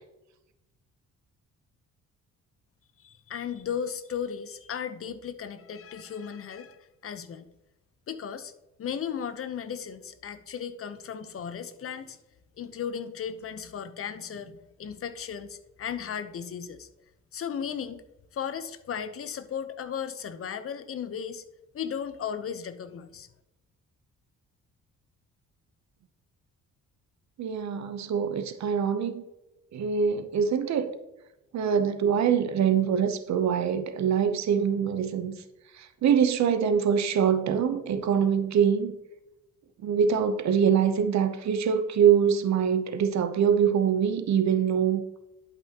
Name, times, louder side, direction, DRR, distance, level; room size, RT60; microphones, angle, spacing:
voice 1, 3.0-7.5 8.1-8.5 8.8-12.2 12.6-16.9 17.3-18.0 18.3-21.4 21.7-23.3, left 7 dB, 50° left, 0.8 m, -35 dB
voice 2, 27.4-29.2 29.7-30.9 31.5-35.4 35.7-38.9 39.8-45.0, right 7 dB, 65° right, 0.8 m, -24 dB
11.5 x 5.4 x 2.9 m
cardioid pair, 90°, 30 cm